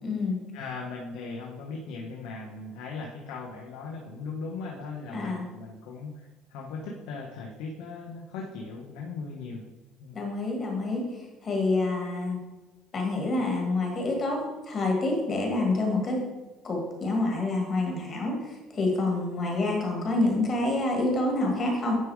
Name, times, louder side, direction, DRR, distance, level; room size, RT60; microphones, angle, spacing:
voice 1, 0.0-0.4 5.1-5.4 10.1-11.0 11.4-12.4 12.9-16.2 16.6-21.9, left 2 dB, 30° left, 1 dB, 1.8 m, -27 dB
voice 2, 0.5-9.6 10.0-10.2, left 4 dB, 85° left, 0 dB, 1.0 m, -38 dB
9.5 x 3.6 x 4.7 m, 1.2 s
cardioid pair, 155°, 0 cm